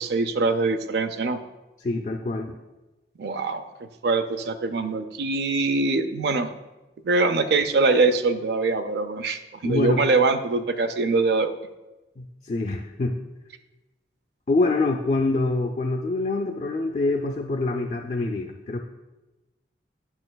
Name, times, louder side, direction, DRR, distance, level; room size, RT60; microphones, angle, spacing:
voice 1, 0.0-1.4 3.2-3.6 4.0-6.5 7.0-11.5, right 3 dB, 65° right, 10 dB, 0.4 m, -23 dB
voice 2, 1.8-2.5 9.6-10.0 12.2-13.2 14.5-18.8, left 2 dB, 40° left, 1 dB, 0.4 m, -25 dB
8.7 x 6.3 x 2.3 m, 1.1 s
head